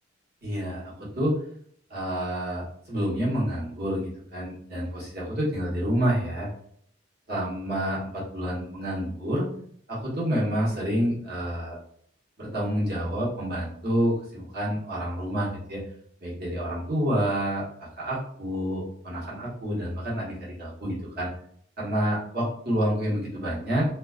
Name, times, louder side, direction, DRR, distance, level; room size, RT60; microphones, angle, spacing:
voice 1, 0.4-1.3 1.9-6.5 7.3-9.5 9.9-11.8 12.4-15.8 16.2-17.6 18.0-21.3 21.8-23.9, equal, 55° right, -6 dB, 1.1 m, -28 dB
2.3 x 2.3 x 2.3 m, 0.64 s
head